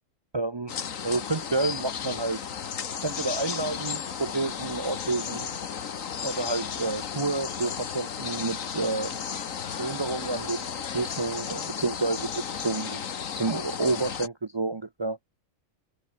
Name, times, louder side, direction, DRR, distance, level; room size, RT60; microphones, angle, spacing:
voice 1, 0.3-0.7 1.0-2.4 3.0-5.5 6.2-9.2 9.8-15.2, right 3 dB, 40° right, 0.4 m, -30 dB
sound 1, 0.7-14.3, left 7 dB, 90° left, 1.7 m, -34 dB
open air
omnidirectional pair, 1.3 m